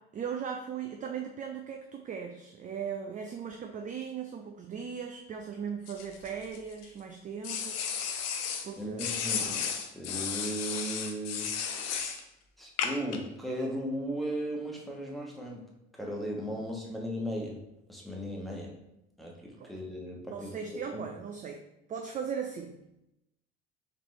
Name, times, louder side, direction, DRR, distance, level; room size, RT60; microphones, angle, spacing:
voice 1, 0.1-7.8 8.6-9.1 16.5-16.6 19.6-19.7 20.3-21.6 21.9-22.8, right 7 dB, 25° right, 4 dB, 0.4 m, -38 dB
sound 1, 5.9-6.9 7.4-8.7 9.0-12.2 12.8-13.2, left 7 dB, 50° left, 0.6 m, -33 dB
voice 2, 8.8-9.7 9.9-11.5 12.6-15.6 15.9-17.6 17.9-18.7 19.2-20.5 20.9-21.0, equal, ahead, -2 dB, 1.1 m, -36 dB
3.9 x 3.1 x 3.1 m, 0.86 s
hypercardioid pair, 60°, 33 cm